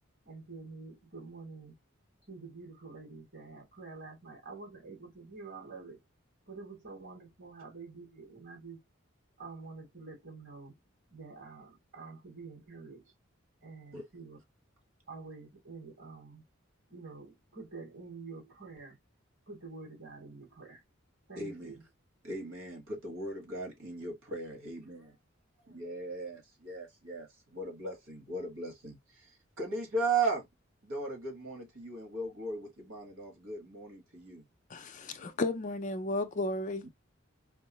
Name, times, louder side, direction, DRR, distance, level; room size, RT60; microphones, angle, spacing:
voice 1, 0.2-1.7 2.3-6.0 6.5-8.8 9.4-10.8 11.1-13.1 13.6-14.4 15.1-16.4 16.9-19.0 19.5-20.8 21.3-21.8, right 4 dB, 55° right, 3.0 m, -47 dB
voice 2, 21.4-21.7 22.2-25.1 25.7-29.3 29.6-30.5 30.8-34.4 36.8-36.9, right 3 dB, 85° right, 1.7 m, -37 dB
voice 3, 34.7-36.9, left 2 dB, 35° left, 0.5 m, -33 dB
4.5 x 2.0 x 3.0 m
head